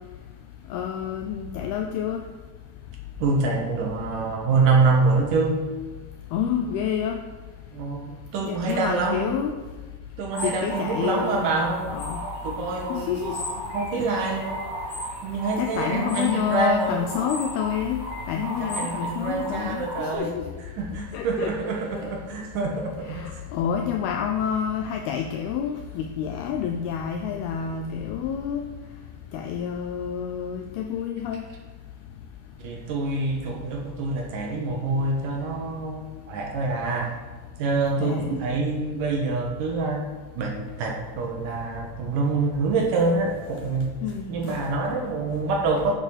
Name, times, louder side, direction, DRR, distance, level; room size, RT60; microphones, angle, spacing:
voice 1, 0.7-2.2 6.3-7.2 8.4-9.5 10.4-11.5 11.9-12.2 12.9-13.4 14.0-14.1 15.6-18.0 18.3-20.5 21.1-22.0 23.1-28.7 29.3-31.4 38.0-38.3 44.0-44.3, left 8 dB, 80° left, 4 dB, 2.3 m, -28 dB
voice 2, 3.2-5.7 7.7-9.4 10.2-12.0 12.2-13.4 13.7-14.6 15.2-17.1 18.5-20.4 20.8-23.4 32.6-37.2 37.6-40.0 40.4-43.9 44.3-45.9, right 3 dB, 70° right, 1 dB, 2.1 m, -26 dB
sound 1, 10.3-20.1, equal, 35° left, 3.4 m, -35 dB
9.0 x 7.0 x 6.4 m, 1.3 s
omnidirectional pair, 5.1 m